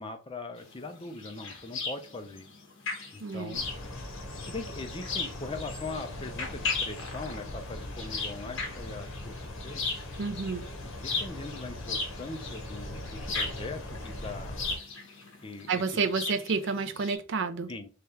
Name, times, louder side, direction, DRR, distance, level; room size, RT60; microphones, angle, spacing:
voice 1, 0.0-2.6 3.1-3.7 4.4-9.9 11.0-14.9 15.4-15.8 17.7-17.9, left 3 dB, 25° left, 6 dB, 0.5 m, -41 dB
sound 1, 0.6-17.2, left 4 dB, 60° left, 1.1 m, -37 dB
sound 2, 2.1-16.8, left 4 dB, 40° left, 1.4 m, -60 dB
voice 2, 3.2-3.6 10.2-10.6 15.7-17.7, right 4 dB, 60° right, 10 dB, 0.4 m, -30 dB
sound 3, 3.5-14.8, left 1 dB, 85° left, 0.9 m, -40 dB
3.3 x 2.3 x 4.1 m, 0.34 s
head